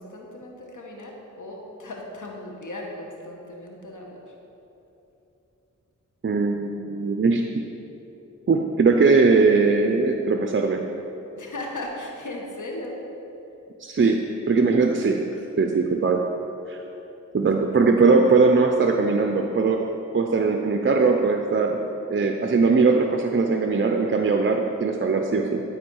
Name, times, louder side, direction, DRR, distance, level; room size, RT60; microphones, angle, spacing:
voice 1, 0.0-4.3 11.3-13.0, left 1 dB, 70° left, -1 dB, 1.4 m, -37 dB
voice 2, 6.2-7.6 8.5-10.8 13.8-15.3 15.6-16.2 16.7-16.8 17.3-19.8 20.1-21.8 22.1-25.6, right 4 dB, 40° right, 3 dB, 0.5 m, -20 dB
11.5 x 4.4 x 4.7 m, 3.0 s
cardioid pair, 50°, 31 cm